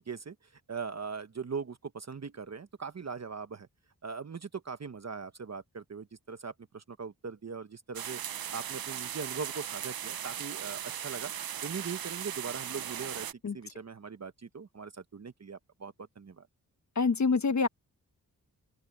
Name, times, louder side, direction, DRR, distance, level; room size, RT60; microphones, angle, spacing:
voice 1, 0.0-3.7 4.0-11.3 11.6-16.5, right 5 dB, 45° right, 1.1 m, -40 dB
sound 1, 8.0-13.3, right 10 dB, 75° right, 0.7 m, -38 dB
voice 2, 17.0-17.7, left 4 dB, 50° left, 1.1 m, -26 dB
open air
cardioid pair, 45°, 36 cm